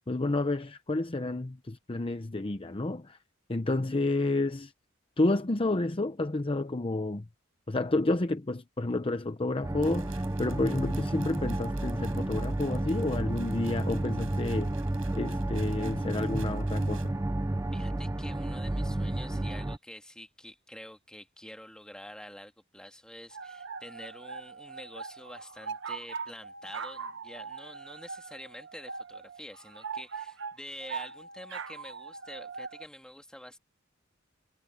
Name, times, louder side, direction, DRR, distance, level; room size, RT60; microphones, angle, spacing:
voice 1, 0.1-3.2 3.5-4.7 5.2-7.3 7.7-14.7 15.1-17.1, left 2 dB, 25° left, 0.8 m, -30 dB
sound 1, 9.6-19.8, right 1 dB, 15° right, 0.5 m, -31 dB
sound 2, 9.8-17.1, right 9 dB, 85° right, 6.4 m, -55 dB
voice 2, 17.7-33.6, left 1 dB, 5° left, 2.1 m, -47 dB
sound 3, 23.3-32.8, right 5 dB, 65° right, 1.2 m, -41 dB
head